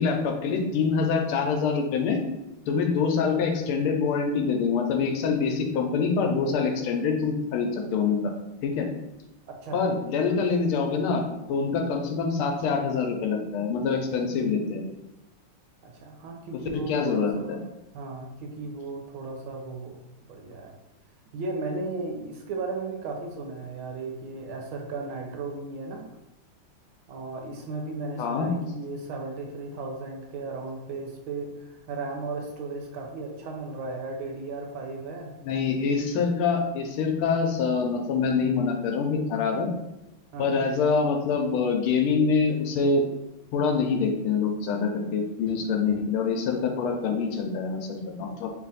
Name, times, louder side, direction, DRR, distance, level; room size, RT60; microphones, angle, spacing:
voice 1, 0.0-2.2 2.7-8.3 8.6-8.9 9.7-11.2 11.5-14.8 16.7-17.6 28.2-28.5 35.4-39.7 40.4-43.0 43.5-48.5, left 5 dB, 90° left, 3 dB, 1.5 m, -25 dB
voice 2, 9.5-9.8 15.8-17.6 17.9-20.7 21.3-26.0 27.1-35.4 40.3-40.5, right 3 dB, 80° right, 1 dB, 1.5 m, -35 dB
3.7 x 2.5 x 4.0 m, 0.94 s
omnidirectional pair, 2.3 m